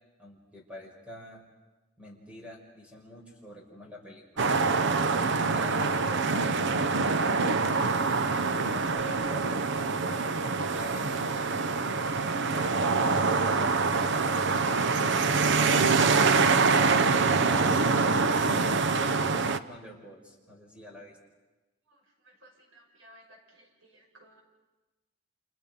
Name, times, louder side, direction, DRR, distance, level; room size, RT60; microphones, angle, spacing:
voice 1, 0.2-1.4 2.0-4.4 5.4-6.0 7.8-11.8 12.3-15.8 16.6-21.2, left 1 dB, 5° right, -1 dB, 5.8 m, -47 dB
sound 1, 4.4-19.6, right 4 dB, 65° right, 0.8 m, -25 dB
voice 2, 21.9-24.4, right 1 dB, 90° right, 1 dB, 5.9 m, -52 dB
29.5 x 28.5 x 5.4 m, 1.1 s
head